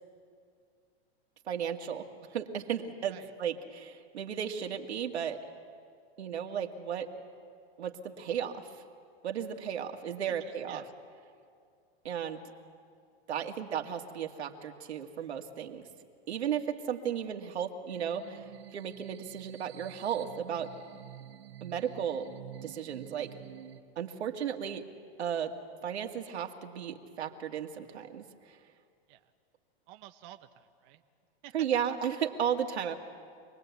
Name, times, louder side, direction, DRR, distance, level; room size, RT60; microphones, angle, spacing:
voice 1, 1.5-2.1 2.3-5.4 6.2-7.1 7.8-8.7 9.2-10.8 12.0-12.4 13.3-15.9 16.3-18.4 18.7-20.7 21.6-22.3 22.6-23.3 24.0-24.8 25.2-25.5 25.8-28.6 31.5-32.9, right 8 dB, 90° right, 3 dB, 2.1 m, -34 dB
voice 2, 10.4-10.9 29.1-29.2 29.9-31.0 31.4-31.5, right 13 dB, 45° right, 5 dB, 1.1 m, -51 dB
sound 1, 17.9-23.8, right 12 dB, 70° right, 1.4 m, -49 dB
26.5 x 20.5 x 8.3 m, 2.3 s
hypercardioid pair, 130°, 32 cm